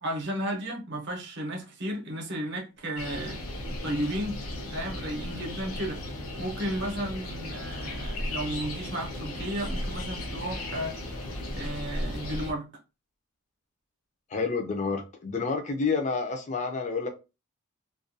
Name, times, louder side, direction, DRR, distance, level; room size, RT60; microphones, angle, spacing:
voice 1, 0.0-3.4 3.8-4.4 4.7-6.0 6.4-10.9 11.5-12.7, right 1 dB, 50° right, 0.7 m, -33 dB
sound 1, 3.0-12.5, left 1 dB, 70° left, 0.7 m, -35 dB
voice 2, 14.3-17.1, left 4 dB, 30° left, 0.4 m, -29 dB
2.3 x 2.2 x 2.6 m
head